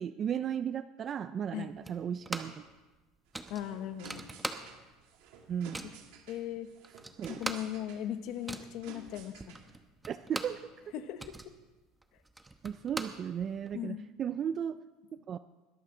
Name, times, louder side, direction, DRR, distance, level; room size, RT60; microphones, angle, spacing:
voice 1, 0.0-2.6 5.5-5.8 7.2-7.4 10.1-10.6 12.6-14.8 15.3-15.4, right 8 dB, 30° right, 12 dB, 0.4 m, -35 dB
sound 1, 1.8-2.7 2.9-3.0 3.3-5.0 5.3-6.0 6.5-6.6 6.8-10.7 11.0-13.8, right 2 dB, 10° right, 0.9 m, -41 dB
sound 2, 3.3-9.8, right 5 dB, 75° right, 2.6 m, -53 dB
voice 2, 3.5-4.2 6.3-6.7 7.3-9.4 10.9-11.3 13.7-14.1, left 11 dB, 55° left, 10 dB, 1.0 m, -38 dB
21.0 x 13.5 x 3.8 m, 1.2 s
cardioid pair, 160°, 0 cm